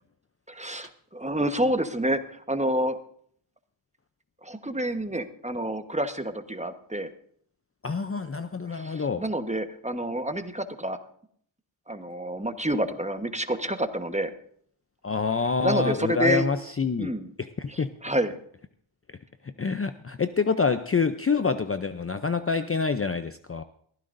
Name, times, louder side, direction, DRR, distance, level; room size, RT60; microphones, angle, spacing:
voice 1, 0.5-3.0 4.4-7.1 8.7-11.0 11.9-14.3 15.6-16.5 17.0-17.3 17.7-18.4, right 1 dB, 15° right, 8 dB, 1.2 m, -28 dB
voice 2, 7.8-9.2 15.0-17.9 19.4-23.6, left 5 dB, 30° left, 10 dB, 0.6 m, -27 dB
21.5 x 15.0 x 2.6 m, 0.62 s
wide cardioid pair, 65°, 49 cm